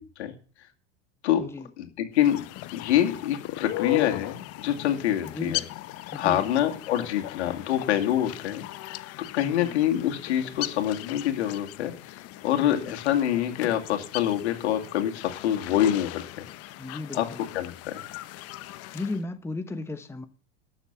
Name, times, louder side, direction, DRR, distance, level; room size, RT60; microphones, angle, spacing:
voice 1, 1.8-2.4 2.7-5.6 6.1-16.4 17.1-17.3 17.5-18.0, left 11 dB, 80° left, 2.5 m, -26 dB
sound 1, 2.1-19.2, left 16 dB, 45° left, 0.9 m, -38 dB
voice 2, 5.3-5.7 6.1-6.4 9.4-9.8 12.6-12.9 16.8-17.4 18.9-20.3, left 2 dB, 10° left, 1.0 m, -35 dB
12.5 x 7.4 x 7.3 m
hypercardioid pair, 110°, 33 cm